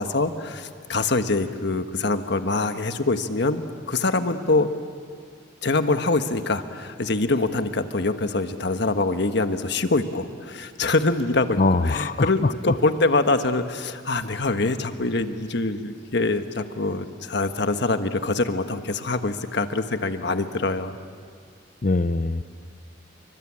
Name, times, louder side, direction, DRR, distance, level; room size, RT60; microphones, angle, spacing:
voice 1, 0.0-4.7 5.6-11.6 11.8-21.0, left 2 dB, 60° left, 8 dB, 1.4 m, -24 dB
voice 2, 11.6-12.7 21.8-22.4, left 3 dB, 45° left, 13 dB, 0.6 m, -22 dB
28.0 x 24.5 x 8.7 m, 2.1 s
head